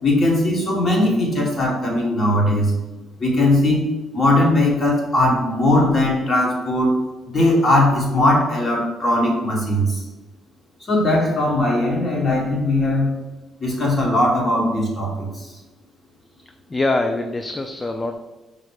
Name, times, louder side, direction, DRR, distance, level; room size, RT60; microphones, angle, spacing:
voice 1, 0.0-2.7 3.2-6.9 7.3-10.0 10.9-13.1 13.6-15.5, left 1 dB, 40° left, -2 dB, 1.5 m, -19 dB
voice 2, 16.4-18.2, left 2 dB, 25° left, 6 dB, 0.3 m, -24 dB
4.9 x 2.1 x 4.7 m, 1.1 s
cardioid pair, 90°, 0 cm